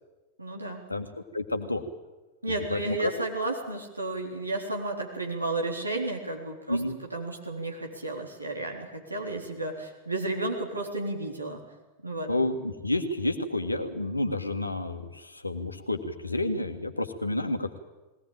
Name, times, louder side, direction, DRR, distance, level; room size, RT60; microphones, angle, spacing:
voice 1, 0.4-0.8 2.4-6.8 7.1-11.6 12.0-12.3, right 2 dB, 85° right, 0 dB, 3.8 m, -32 dB
voice 2, 1.3-1.8 2.7-3.1 6.7-7.0 12.3-17.8, left 2 dB, 85° left, 6 dB, 1.7 m, -30 dB
21.0 x 18.0 x 8.9 m, 1.1 s
figure-of-eight pair, 90°, 0 cm